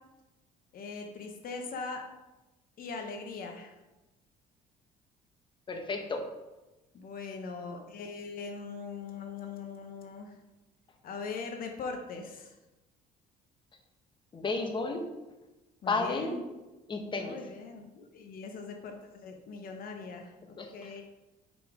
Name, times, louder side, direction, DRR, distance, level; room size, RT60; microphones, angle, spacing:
voice 1, 0.7-2.1 2.8-3.7 6.9-10.4 11.0-12.6 15.8-16.4 17.2-21.0, left 4 dB, 60° left, 3 dB, 1.0 m, -41 dB
voice 2, 5.7-6.2 14.3-15.0 15.9-16.4 16.9-17.4 20.6-20.9, left 3 dB, 30° left, 3 dB, 1.1 m, -32 dB
5.6 x 5.2 x 4.9 m, 1.1 s
cardioid pair, 110°, 17 cm